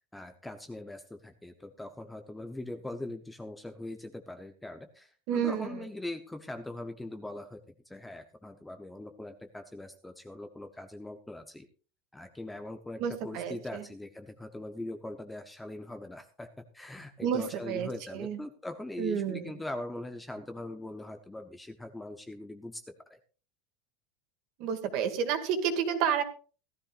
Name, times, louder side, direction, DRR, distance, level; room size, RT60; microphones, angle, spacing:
voice 1, 0.1-11.7 12.1-22.8 23.1-23.2, left 1 dB, 5° left, 7 dB, 0.8 m, -41 dB
voice 2, 5.3-5.7 13.0-13.8 17.2-18.4 19.0-19.5 24.6-26.2, right 8 dB, 45° right, 7 dB, 2.2 m, -30 dB
17.5 x 13.0 x 2.5 m, 0.37 s
supercardioid pair, 160°, 0 cm